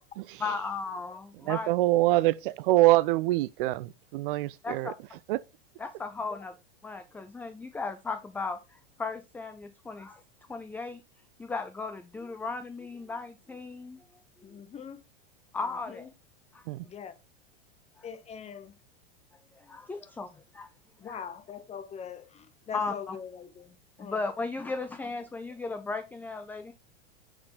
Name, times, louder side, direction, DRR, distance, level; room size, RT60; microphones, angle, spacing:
voice 1, 0.4-1.7 4.6-4.9 5.8-6.5 6.8-10.2 10.5-11.0 11.4-14.0 15.5-16.1 16.5-16.7 18.0-18.1 19.5-20.7 21.0-21.2 22.7-23.2 24.0-26.7, left 4 dB, 5° left, 0.4 m, -36 dB
voice 2, 1.5-4.9 5.3-5.4 16.7-16.8, right 17 dB, 60° right, 0.4 m, -25 dB
voice 3, 14.4-15.0 15.9-16.1 16.8-17.1 18.0-18.7 21.0-24.2, left 7 dB, 20° left, 0.9 m, -42 dB
7.5 x 4.5 x 3.9 m
hypercardioid pair, 120°, 30 cm